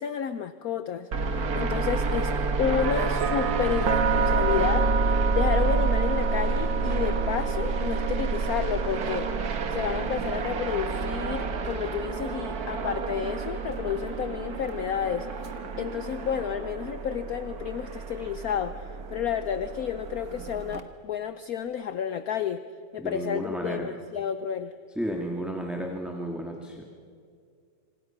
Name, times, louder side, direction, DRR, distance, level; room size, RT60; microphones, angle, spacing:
voice 1, 0.0-2.3 2.6-9.3 9.7-15.3 15.8-22.6 22.9-24.7, left 8 dB, 60° left, 11 dB, 1.1 m, -31 dB
sound 1, 1.1-20.8, right 3 dB, 55° right, 1.8 m, -29 dB
sound 2, 2.8-16.7, right 6 dB, 85° right, 1.7 m, -32 dB
voice 2, 23.0-23.9 25.0-26.8, equal, ahead, 1 dB, 1.9 m, -32 dB
26.5 x 26.0 x 6.0 m, 2.2 s
omnidirectional pair, 2.0 m